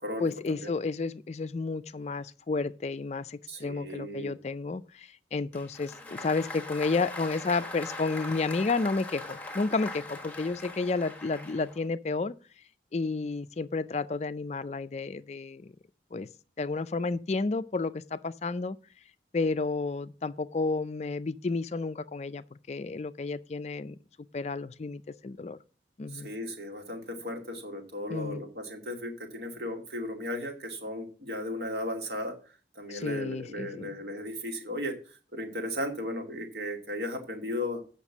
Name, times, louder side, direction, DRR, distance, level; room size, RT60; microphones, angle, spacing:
voice 1, 0.2-12.3 12.9-15.7 16.1-16.3 16.6-18.8 19.3-24.0 24.3-25.6 26.0-26.3 28.1-28.4 32.9-33.9, left 3 dB, 35° left, 0.4 m, -31 dB
voice 2, 3.5-4.3 26.1-32.3 32.8-35.0 35.3-37.8, left 1 dB, 65° right, 2.4 m, -35 dB
Applause, 5.5-11.9, left 2 dB, 10° left, 1.3 m, -41 dB
8.2 x 5.9 x 7.2 m
head